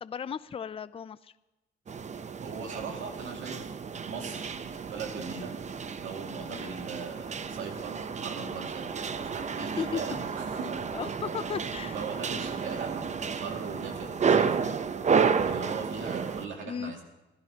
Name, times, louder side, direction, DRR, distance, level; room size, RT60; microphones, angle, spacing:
voice 1, 0.0-1.3 6.5-6.7 9.6-10.0 10.9-12.0 15.7-16.0 16.7-16.9, left 7 dB, 30° left, 15 dB, 0.4 m, -36 dB
sound 1, 1.9-16.5, right 6 dB, 35° right, 0.7 m, -31 dB
voice 2, 2.4-3.7 4.1-5.5 6.0-10.9 11.8-14.7 15.4-17.0, right 5 dB, 75° right, 1 dB, 2.3 m, -40 dB
26.5 x 12.0 x 2.9 m, 1.0 s
cardioid pair, 90°, 20 cm